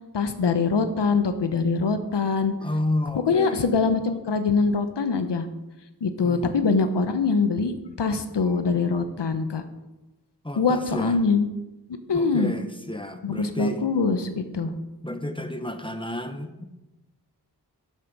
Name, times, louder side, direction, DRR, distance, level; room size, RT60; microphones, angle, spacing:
voice 1, 0.1-2.5 3.3-5.5 6.0-9.6 10.6-11.5 12.1-12.5 13.2-14.7, left 4 dB, 90° left, 9 dB, 0.9 m, -23 dB
voice 2, 2.6-3.6 6.2-6.6 10.4-11.2 12.1-13.8 14.6-14.8 15.0-16.6, left 1 dB, 10° left, 7 dB, 1.0 m, -31 dB
10.5 x 6.6 x 5.3 m, 1.0 s
cardioid pair, 40°, 41 cm